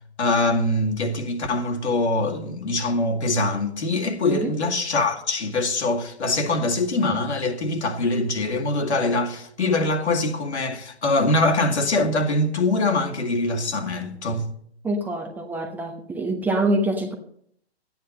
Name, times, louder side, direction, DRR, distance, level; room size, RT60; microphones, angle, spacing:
voice 1, 0.2-14.5, left 2 dB, 80° left, 2.2 m, -23 dB
voice 2, 14.8-17.1, right 1 dB, 5° right, 0.6 m, -25 dB
13.0 x 9.5 x 5.4 m
hypercardioid pair, 135°, 33 cm